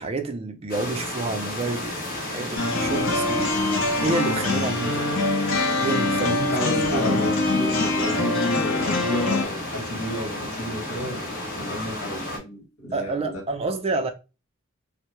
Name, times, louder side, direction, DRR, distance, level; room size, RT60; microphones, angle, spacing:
voice 1, 0.0-3.4 4.0-5.1 5.8-6.4 6.9-7.2 7.6-7.8 12.9-14.1, right 3 dB, 30° right, 0.4 m, -28 dB
sound 1, 0.7-12.4, left 1 dB, 45° left, 0.9 m, -33 dB
sound 2, 2.6-9.4, left 2 dB, 60° left, 0.6 m, -24 dB
voice 2, 6.2-13.4, left 1 dB, 80° left, 1.1 m, -31 dB
2.2 x 2.0 x 2.8 m
head